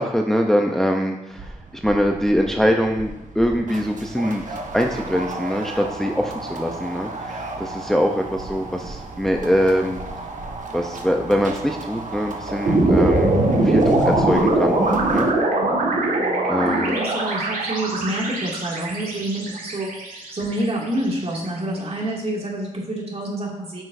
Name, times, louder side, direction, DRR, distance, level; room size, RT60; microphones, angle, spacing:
voice 1, 0.0-4.4 4.7-10.0 10.7-13.4 13.6-14.8 15.1-15.3 16.5-17.0, equal, 5° left, 2 dB, 0.6 m, -23 dB
sound 1, 1.3-15.3, right 2 dB, 60° right, 1.2 m, -33 dB
sound 2, 12.7-21.0, right 2 dB, 75° right, 1.8 m, -21 dB
voice 2, 15.5-23.8, right 1 dB, 45° right, -3 dB, 2.4 m, -28 dB
8.8 x 6.2 x 2.7 m, 0.95 s
cardioid pair, 65°, 14 cm